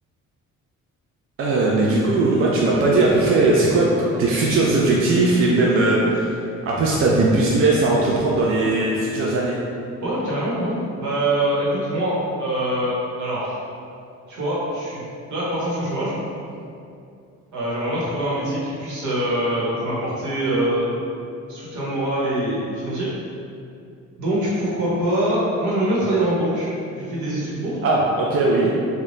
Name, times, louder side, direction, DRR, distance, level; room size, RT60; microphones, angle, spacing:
voice 1, 1.4-9.6 27.8-28.7, right 2 dB, 45° right, -4 dB, 0.4 m, -19 dB
voice 2, 10.0-13.5 14.3-15.0 15.3-16.1 17.5-21.1 21.5-23.1 24.2-27.8, right 1 dB, 75° right, -7 dB, 1.1 m, -24 dB
2.6 x 2.3 x 3.4 m, 2.5 s
cardioid pair, 90°, 30 cm